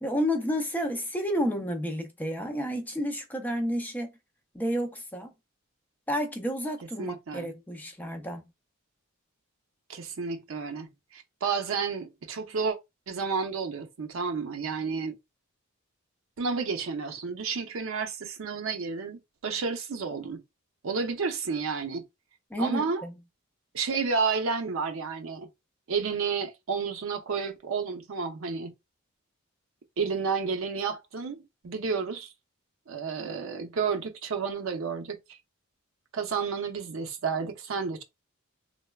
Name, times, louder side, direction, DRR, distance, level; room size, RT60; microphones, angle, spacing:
voice 1, 0.0-4.1 4.5-5.3 6.1-8.4 22.5-23.1, equal, 10° left, 0.4 m, -30 dB
voice 2, 7.0-7.5 9.9-12.8 13.1-15.2 16.4-20.4 20.8-22.0 22.6-23.0 23.7-25.5 25.9-28.7 30.0-32.3 32.9-35.4 36.1-38.0, right 5 dB, 65° right, 0.5 m, -31 dB
3.2 x 2.1 x 2.2 m
head